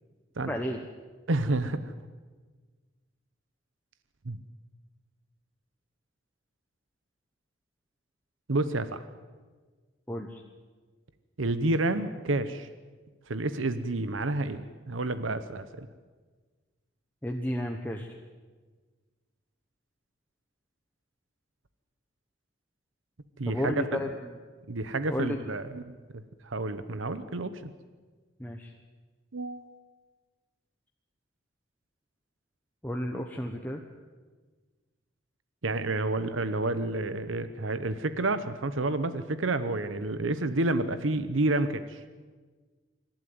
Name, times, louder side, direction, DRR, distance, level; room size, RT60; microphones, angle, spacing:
voice 1, 0.5-0.8 10.1-10.4 17.2-18.1 23.5-24.4 25.1-25.4 28.4-28.7 32.8-33.8, left 1 dB, 10° left, 1 dB, 1.1 m, -32 dB
voice 2, 1.3-1.9 4.2-4.4 8.5-9.0 11.4-12.7 13.3-15.9 23.4-24.0 24.7-25.8 26.4-27.7 29.3-29.7 35.6-42.0, right 2 dB, 90° right, 12 dB, 1.0 m, -29 dB
26.0 x 12.0 x 9.5 m, 1.4 s
head